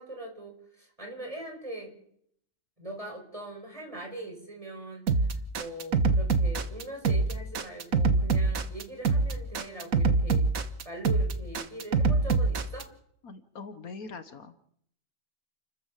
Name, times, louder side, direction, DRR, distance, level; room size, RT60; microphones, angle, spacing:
voice 1, 0.0-2.0 2.8-10.4 10.8-12.9, right 1 dB, 20° right, 1 dB, 5.5 m, -41 dB
sound 1, 5.1-12.8, right 4 dB, 60° right, 1.6 m, -25 dB
voice 2, 13.2-14.6, left 4 dB, 65° left, 10 dB, 1.6 m, -43 dB
29.0 x 13.0 x 7.4 m, 0.69 s
omnidirectional pair, 1.7 m